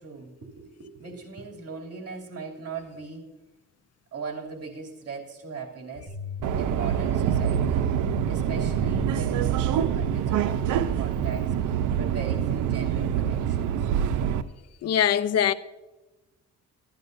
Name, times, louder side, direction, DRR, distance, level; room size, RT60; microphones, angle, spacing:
voice 1, 0.0-3.3 4.1-6.1 6.5-7.8 8.3-13.9, right 5 dB, 55° right, 2.7 m, -39 dB
sound 1, 6.1-11.4, right 2 dB, 15° right, 2.0 m, -35 dB
Subway metro underground, 6.4-14.4, right 9 dB, 85° right, 0.6 m, -25 dB
voice 2, 14.8-15.5, left 9 dB, 55° left, 0.6 m, -22 dB
16.0 x 11.0 x 2.6 m
cardioid pair, 90°, 30 cm